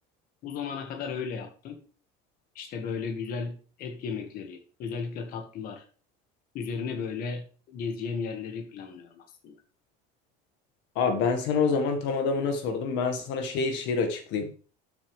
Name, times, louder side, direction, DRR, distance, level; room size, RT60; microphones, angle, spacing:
voice 1, 0.4-1.8 2.6-5.8 6.5-9.6, left 5 dB, 45° left, 1.8 m, -35 dB
voice 2, 11.0-14.5, left 5 dB, 65° left, 1.8 m, -27 dB
12.5 x 6.9 x 3.4 m
cardioid pair, 160°, 21 cm